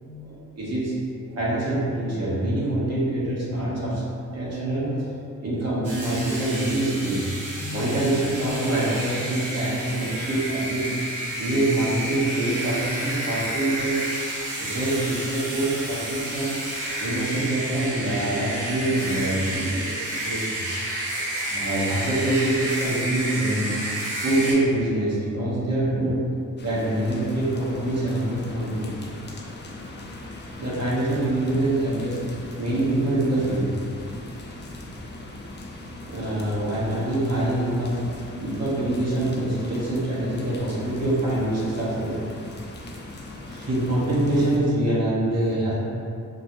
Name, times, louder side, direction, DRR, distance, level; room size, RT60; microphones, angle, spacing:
voice 1, 0.0-1.0 1.2-4.0 4.3-5.1 5.4-7.3 7.5-10.9 11.4-14.1 14.6-16.5 17.0-20.7 21.1-21.2 21.5-23.8 24.2-26.3 26.6-28.9 30.6-33.7 36.0-42.2 43.5-45.7, right 1 dB, 55° right, -7 dB, 1.2 m, -25 dB
sound 1, 5.8-24.5, right 1 dB, 80° right, 1.1 m, -30 dB
sound 2, 26.6-44.6, left 2 dB, 35° left, 0.5 m, -39 dB
4.3 x 2.1 x 3.0 m, 2.5 s
cardioid pair, 70°, 31 cm